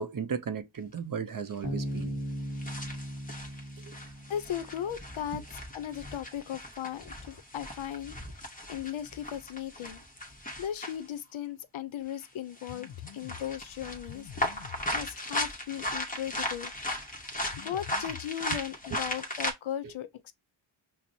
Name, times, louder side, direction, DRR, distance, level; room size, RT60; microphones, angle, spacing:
voice 1, 0.0-2.2 3.8-3.9 19.8-19.9, right 6 dB, 45° right, 0.5 m, -35 dB
sound 1, 1.0-1.1 2.0-2.1 2.5-11.1 12.1-12.2 12.6-19.5, left 1 dB, 15° left, 0.8 m, -37 dB
Bass guitar, 1.6-5.1, equal, 35° left, 1.3 m, -37 dB
voice 2, 4.3-10.0 10.6-16.7 17.5-20.3, left 10 dB, 75° left, 0.6 m, -37 dB
5.9 x 2.0 x 2.6 m
wide cardioid pair, 80°, 47 cm